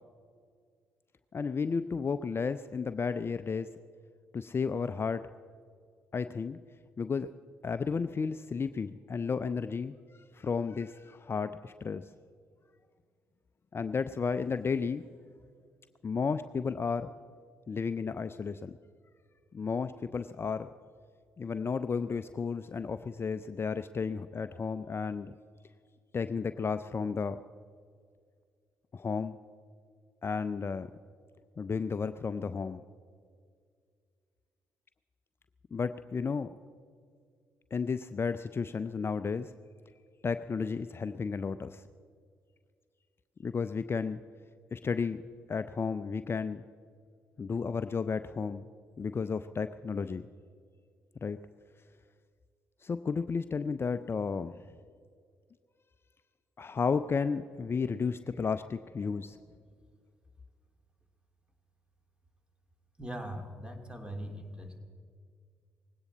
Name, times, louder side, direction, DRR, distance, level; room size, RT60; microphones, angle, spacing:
voice 1, 1.3-3.7 4.3-5.3 6.1-6.6 7.0-7.3 7.6-12.0 13.7-15.0 16.0-17.1 17.7-18.8 19.5-20.7 21.4-25.3 26.1-27.4 28.9-29.4 30.2-30.9 31.6-32.8 35.7-36.5 37.7-39.5 40.2-41.8 43.4-44.2 44.7-45.2 45.5-46.6 47.4-48.7 49.0-50.3 51.2-51.4 52.8-54.6 56.6-59.4, left 5 dB, 35° left, 12 dB, 0.5 m, -33 dB
voice 2, 63.0-64.8, equal, 15° right, 4 dB, 2.7 m, -41 dB
19.5 x 17.0 x 4.1 m, 2.1 s
hypercardioid pair, 45°, 7 cm